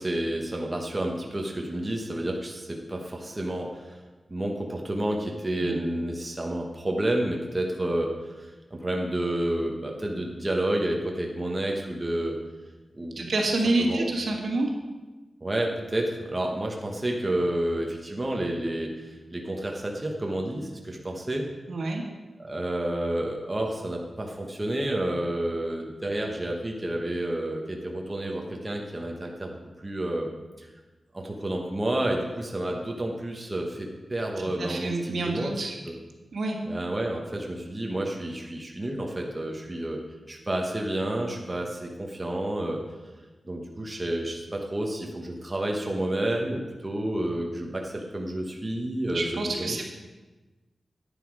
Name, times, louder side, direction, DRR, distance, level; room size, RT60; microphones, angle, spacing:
voice 1, 0.0-4.0 4.3-8.1 8.4-12.4 12.9-13.2 13.8-14.1 15.4-21.5 22.4-29.5 29.8-30.3 30.6-30.7 31.1-35.5 35.9-36.0 36.7-40.0 40.3-42.8 43.4-49.8, right 1 dB, 20° right, 0 dB, 1.2 m, -30 dB
voice 2, 13.1-14.7 21.7-22.0 34.6-35.7 36.3-36.6 49.1-49.8, right 2 dB, 75° right, 1 dB, 1.8 m, -27 dB
10.0 x 9.5 x 4.7 m, 1.2 s
wide cardioid pair, 140°, 0 cm